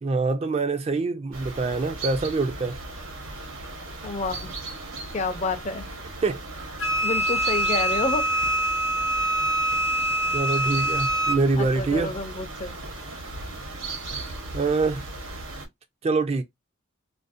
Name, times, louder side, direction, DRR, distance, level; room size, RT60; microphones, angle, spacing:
voice 1, 0.0-2.8 6.2-6.4 10.3-12.1 14.5-15.1 16.0-16.4, right 3 dB, 30° right, 0.3 m, -25 dB
sound 1, 1.3-15.7, right 3 dB, 75° right, 0.9 m, -37 dB
voice 2, 4.0-4.5 5.1-5.9 7.0-8.3 11.6-12.8, left 3 dB, 35° left, 0.4 m, -29 dB
Wind instrument woodwind instrument, 6.8-11.4, right 1 dB, 80° left, 0.7 m, -24 dB
2.5 x 2.0 x 2.4 m
head